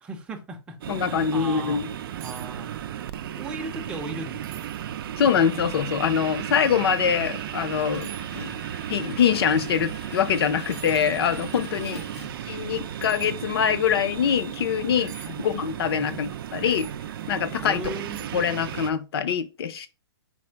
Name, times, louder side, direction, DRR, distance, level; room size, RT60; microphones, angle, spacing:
voice 1, 0.0-1.8 2.2-2.7 3.4-4.7 8.3-8.5 11.9-12.3 15.3-15.4 15.9-16.1 17.6-18.3, right 2 dB, 5° right, 0.5 m, -37 dB
sound 1, 0.8-18.9, right 10 dB, 60° right, 0.4 m, -35 dB
voice 2, 0.9-1.9 5.2-8.5 8.9-12.0 12.5-16.9 17.3-17.8 18.3-19.9, left 7 dB, 65° left, 0.7 m, -24 dB
sound 2, 2.2-2.5 2.8-3.3 3.7-3.8 4.4-4.9 5.5-5.6 7.1-7.2 8.0-8.3 10.2-10.3 10.7-11.2 13.0-13.3 15.1-15.3 16.7-17.0 17.5-17.6 18.1-18.5 18.8-18.9, right 10 dB, 40° right, 0.8 m, -46 dB
sound 3, 2.3-12.8, left 1 dB, 90° left, 2.2 m, -48 dB
4.2 x 2.1 x 4.4 m
hypercardioid pair, 150°, 14 cm